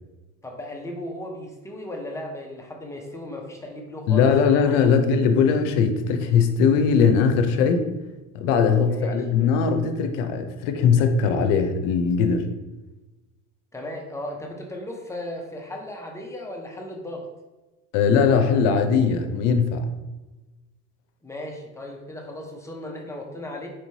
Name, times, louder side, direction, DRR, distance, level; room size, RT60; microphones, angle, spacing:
voice 1, 0.4-5.0 8.8-9.3 13.7-17.3 21.2-23.7, left 1 dB, 10° left, 0 dB, 0.5 m, -36 dB
voice 2, 4.1-7.9 8.3-12.5 17.9-19.9, left 6 dB, 80° left, 7 dB, 0.6 m, -20 dB
4.5 x 3.0 x 2.7 m, 1.1 s
supercardioid pair, 130°, 38 cm